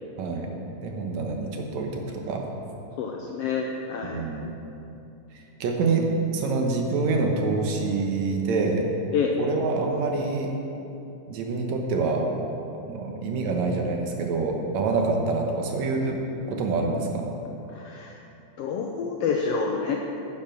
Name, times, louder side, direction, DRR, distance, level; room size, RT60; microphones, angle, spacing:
voice 1, 0.2-0.5 0.8-2.5 4.0-4.5 5.3-8.9 9.4-10.5 11.3-12.3 12.8-16.2 16.5-17.3, right 3 dB, 75° right, 2 dB, 2.3 m, -26 dB
voice 2, 3.0-4.2 9.1-9.4 17.7-18.1 18.6-20.0, left 5 dB, 80° left, 1 dB, 1.4 m, -28 dB
10.0 x 7.2 x 6.0 m, 2.9 s
omnidirectional pair, 3.4 m